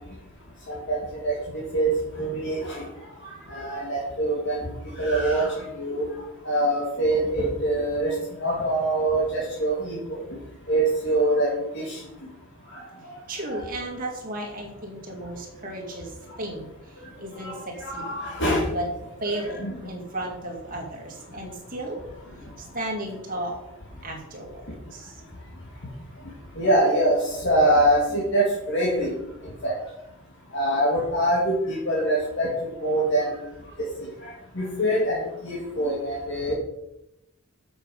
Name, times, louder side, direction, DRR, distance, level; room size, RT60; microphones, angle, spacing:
voice 1, 0.7-1.0 1.2-2.8 3.5-4.6 5.0-6.0 6.4-10.2 10.7-12.0 13.5-13.6 17.4-18.6 19.2-19.8 26.6-29.2 29.6-29.7 30.5-32.5 32.8-33.3 34.0-34.1 34.6-36.5, right 1 dB, 55° left, -5 dB, 2.3 m, -24 dB
voice 2, 13.3-16.1 16.4-16.7 17.2-18.0 18.7-18.9 19.2-22.0 22.7-23.6 24.0-24.6 24.9-25.1, right 1 dB, 40° right, -1 dB, 2.4 m, -34 dB
8.0 x 6.7 x 5.5 m, 0.87 s
head